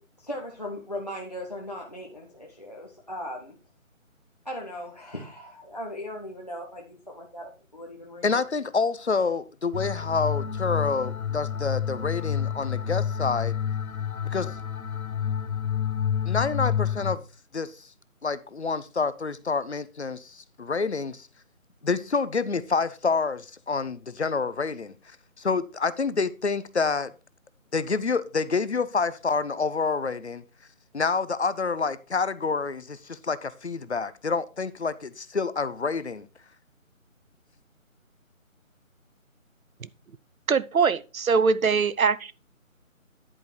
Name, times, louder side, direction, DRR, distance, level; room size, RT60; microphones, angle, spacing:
voice 1, 0.2-3.5 4.4-8.4, left 1 dB, 30° left, 1.1 m, -38 dB
voice 2, 8.2-13.5 14.2-14.6 16.3-17.2 17.5-17.9 18.2-21.3 21.8-27.1 27.7-30.4 30.9-36.3, left 4 dB, 55° left, 0.7 m, -28 dB
sound 1, 9.7-17.2, left 8 dB, 90° left, 1.1 m, -29 dB
voice 3, 40.5-42.3, right 5 dB, 80° right, 0.9 m, -22 dB
11.0 x 5.2 x 4.5 m
figure-of-eight pair, 180°, 41 cm